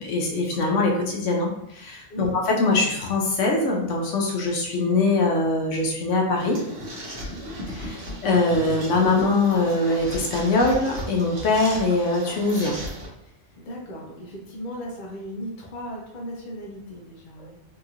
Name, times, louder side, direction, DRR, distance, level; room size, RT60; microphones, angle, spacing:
voice 1, 0.0-6.6 7.7-12.8, left 3 dB, 80° left, 0 dB, 1.0 m, -22 dB
sound 1, 6.3-13.1, equal, 55° right, 1.0 m, -36 dB
voice 2, 13.6-17.6, equal, 50° left, -1 dB, 0.8 m, -36 dB
3.0 x 2.8 x 2.4 m, 0.76 s
omnidirectional pair, 1.3 m